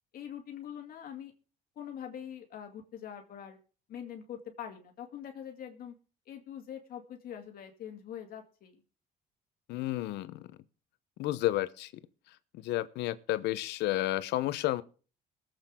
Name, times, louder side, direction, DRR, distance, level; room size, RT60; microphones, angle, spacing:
voice 1, 0.1-1.3 1.8-3.6 3.9-5.9 6.3-8.8, left 9 dB, 60° left, 2.4 m, -44 dB
voice 2, 9.7-10.5 11.2-11.9 12.5-14.8, left 15 dB, 85° left, 0.9 m, -31 dB
22.0 x 8.0 x 3.8 m
cardioid pair, 110°, 17 cm